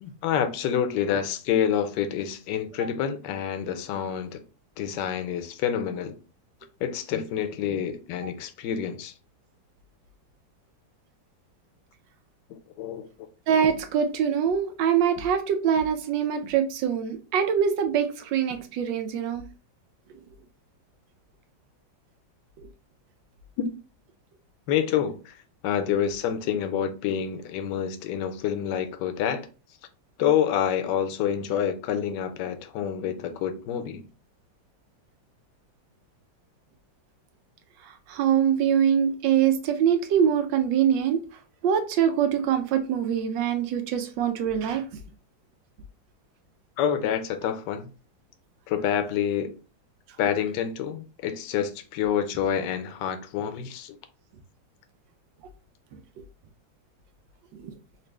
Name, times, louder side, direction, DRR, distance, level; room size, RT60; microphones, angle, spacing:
voice 1, 0.0-4.4 4.8-6.1 6.8-9.1 12.5-13.1 24.7-25.4 25.6-29.5 30.2-34.0 46.8-47.9 48.7-49.5 50.2-54.0, left 9 dB, 75° left, 1.1 m, -27 dB
voice 2, 13.5-19.4 37.8-41.2 41.6-44.8 57.5-57.7, right 8 dB, 75° right, 1.2 m, -24 dB
4.1 x 2.5 x 3.2 m
omnidirectional pair, 2.1 m